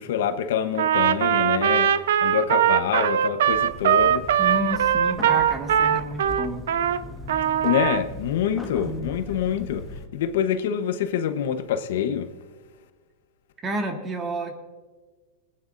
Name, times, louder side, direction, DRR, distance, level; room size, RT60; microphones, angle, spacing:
voice 1, 0.0-4.3 7.6-12.3, left 9 dB, 70° left, 1.0 m, -26 dB
Trumpet, 0.7-7.0 7.3-8.0, right 9 dB, 80° right, 0.7 m, -21 dB
sound 1, 3.5-10.1, left 2 dB, 5° left, 1.5 m, -39 dB
voice 2, 4.4-6.7 8.8-9.2 13.6-14.6, right 1 dB, 20° right, 1.9 m, -30 dB
24.5 x 9.8 x 2.6 m
supercardioid pair, 140°, 0 cm